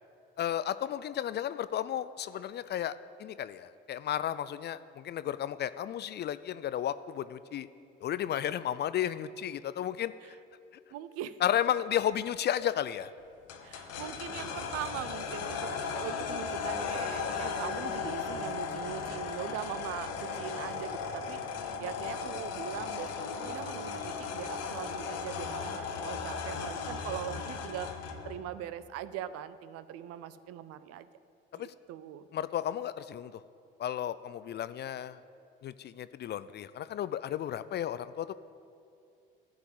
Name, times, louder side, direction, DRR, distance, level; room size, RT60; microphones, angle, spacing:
voice 1, 0.4-7.7 8.0-10.4 11.4-13.1 31.5-31.7 32.3-33.3 33.8-35.2 35.6-38.4, left 10 dB, 35° left, 15 dB, 0.4 m, -33 dB
voice 2, 10.9-11.4 13.6-21.4 21.8-27.9 28.2-31.1 31.6-32.3, right 11 dB, 55° right, 14 dB, 0.5 m, -41 dB
sound 1, 13.5-28.3, left 5 dB, 55° left, 1.2 m, -36 dB
11.5 x 4.8 x 8.0 m, 2.5 s
hypercardioid pair, 55°, 29 cm